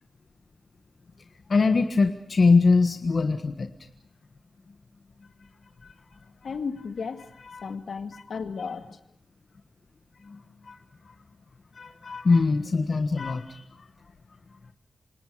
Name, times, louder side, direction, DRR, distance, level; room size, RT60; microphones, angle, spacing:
voice 1, 1.5-3.7 5.8-5.9 7.5-7.6 8.1-8.2 10.2-10.4 10.6-10.8 11.7-13.9, left 4 dB, 40° left, 7 dB, 1.5 m, -23 dB
voice 2, 6.4-7.2 7.6-9.0, left 5 dB, 65° left, 8 dB, 2.3 m, -34 dB
28.5 x 27.0 x 5.0 m, 0.69 s
wide cardioid pair, 175°, 0 cm